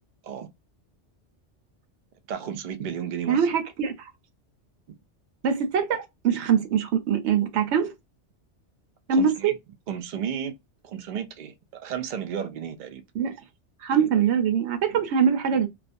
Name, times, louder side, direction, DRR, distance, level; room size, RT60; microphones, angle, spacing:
voice 1, 2.3-3.5 9.1-9.6 9.9-10.5 10.8-13.0, right 8 dB, 60° right, 0.5 m, -33 dB
voice 2, 3.3-4.1 5.4-7.9 9.1-9.5 13.2-13.3 13.8-15.7, right 7 dB, 75° right, 0.9 m, -23 dB
2.4 x 2.1 x 2.5 m
omnidirectional pair, 1.2 m